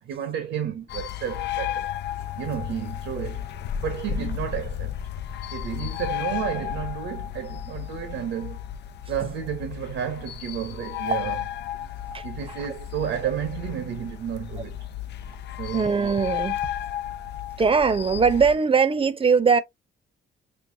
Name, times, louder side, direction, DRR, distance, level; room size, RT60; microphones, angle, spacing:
voice 1, 0.0-1.9 2.3-3.5 3.8-4.9 5.5-8.6 9.1-11.4 12.2-14.8 15.6-15.9, right 9 dB, 85° right, 1.0 m, -31 dB
sound 1, 0.9-18.5, left 11 dB, 60° left, 0.5 m, -33 dB
voice 2, 15.7-16.6 17.6-19.6, right 5 dB, 25° right, 0.7 m, -21 dB
5.5 x 2.1 x 2.6 m
cardioid pair, 90°, 20 cm